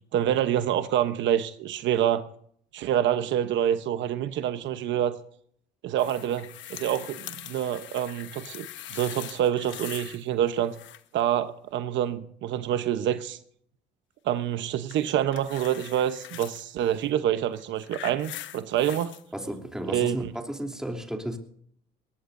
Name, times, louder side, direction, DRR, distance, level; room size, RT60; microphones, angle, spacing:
voice 1, 0.1-2.2 2.7-5.2 5.8-10.7 11.1-13.4 14.2-19.1 19.9-20.3, right 10 dB, 70° right, 1.0 m, -27 dB
sound 1, 6.0-10.2 10.5-11.2 14.9-16.6 17.5-19.2 20.1-20.2, left 13 dB, 70° left, 1.2 m, -42 dB
voice 2, 19.3-21.4, right 1 dB, 5° right, 3.2 m, -33 dB
22.5 x 18.5 x 2.7 m
cardioid pair, 100°, 20 cm